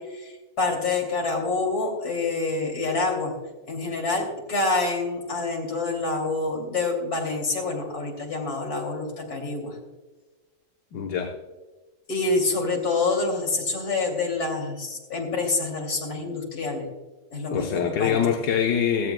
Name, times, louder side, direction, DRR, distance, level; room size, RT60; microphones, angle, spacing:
voice 1, 0.0-3.3 3.7-9.8 12.1-16.9 17.3-18.2, left 3 dB, 50° left, 0 dB, 3.2 m, -27 dB
voice 2, 10.9-11.4 17.5-19.1, left 8 dB, 65° left, 3 dB, 1.5 m, -24 dB
16.5 x 14.0 x 2.2 m, 1.2 s
omnidirectional pair, 2.1 m